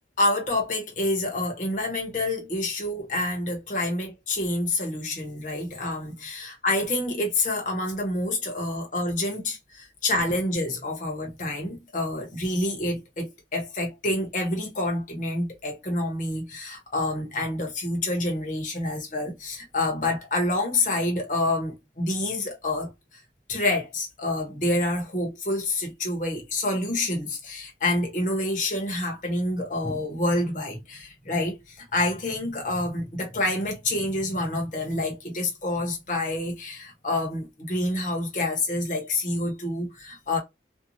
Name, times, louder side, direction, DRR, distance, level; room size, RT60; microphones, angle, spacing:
voice 1, 0.2-22.9 23.5-40.4, left 2 dB, 45° left, 0.9 m, -28 dB
2.6 x 2.3 x 2.7 m
head